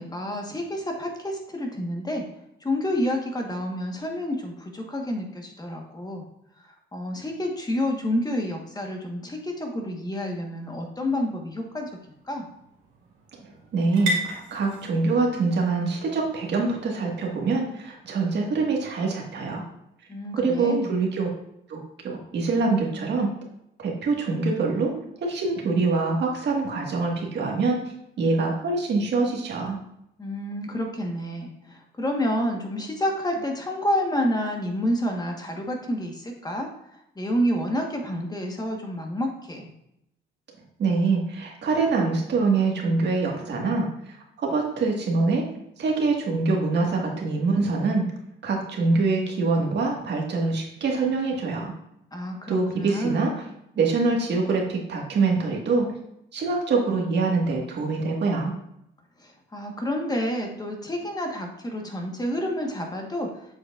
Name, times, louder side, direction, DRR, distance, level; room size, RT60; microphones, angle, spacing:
voice 1, 0.0-2.2 2.6-6.2 6.9-11.9 12.2-12.5 20.1-20.9 30.2-36.7 37.2-39.7 52.1-53.3 59.2-63.3, equal, 20° left, 1 dB, 1.3 m, -29 dB
sound 1, 10.4-18.3, right 1 dB, 80° right, 1.9 m, -38 dB
voice 2, 13.7-19.6 20.4-21.3 21.7-23.3 23.8-24.9 25.2-27.8 28.2-29.8 40.8-43.9 44.4-45.4 45.8-48.0 48.4-51.7 52.5-53.3 53.8-55.9 56.3-58.5, right 3 dB, 60° right, 0 dB, 1.7 m, -24 dB
7.8 x 6.4 x 2.5 m, 0.79 s
cardioid pair, 90°, 20 cm